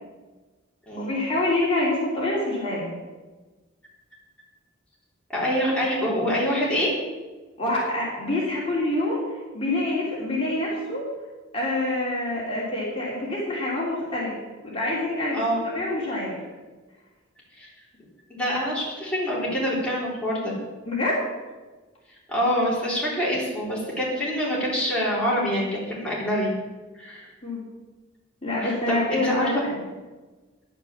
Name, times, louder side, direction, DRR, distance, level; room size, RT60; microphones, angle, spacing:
voice 1, 1.0-2.9 7.6-11.1 11.5-14.4 14.6-15.4 15.7-16.4 20.9-21.2 27.4-27.6 28.4-29.7, left 2 dB, 30° left, -5 dB, 3.4 m, -26 dB
voice 2, 5.3-6.9 15.3-15.6 17.6-17.7 18.3-20.5 22.3-26.5 27.0-27.3 28.6-29.5, equal, 5° left, -6 dB, 3.8 m, -25 dB
10.5 x 9.6 x 7.4 m, 1.3 s
head